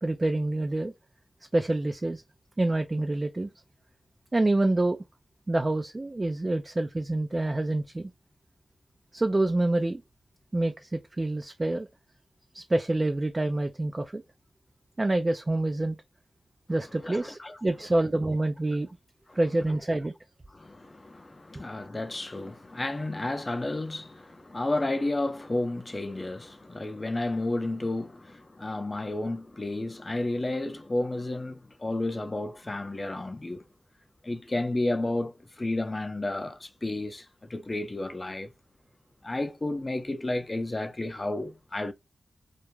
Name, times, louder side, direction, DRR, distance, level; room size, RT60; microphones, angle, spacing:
voice 1, 0.0-0.9 1.5-2.2 2.6-3.5 4.3-5.0 5.5-8.1 9.1-10.0 10.5-11.9 12.5-14.2 15.0-16.0 16.7-18.9 19.3-20.1, right 2 dB, 35° right, 0.4 m, -27 dB
voice 2, 17.0-17.6 19.3-19.4 20.5-33.7 34.2-38.5 39.2-41.9, left 2 dB, 35° left, 0.6 m, -32 dB
2.3 x 2.1 x 3.0 m
cardioid pair, 40°, 0 cm